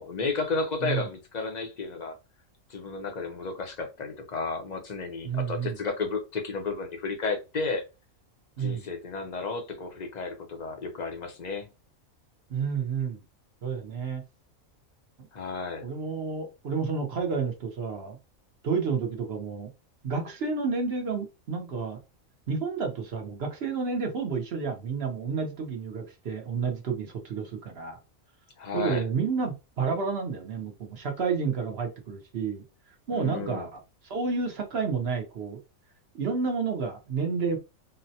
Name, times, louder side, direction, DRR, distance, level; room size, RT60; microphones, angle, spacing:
voice 1, 0.0-2.2 2.7-7.8 8.6-11.7 15.3-15.9 28.6-29.0 33.1-33.7, left 4 dB, 45° left, 0.6 m, -32 dB
voice 2, 5.2-5.8 8.6-8.8 12.5-13.2 13.6-14.2 15.8-18.2 18.6-19.7 20.0-22.0 22.5-28.0 28.7-32.6 33.1-33.8 34.0-35.6 36.2-37.6, right 5 dB, 55° right, 0.9 m, -30 dB
3.9 x 2.0 x 2.7 m
omnidirectional pair, 1.4 m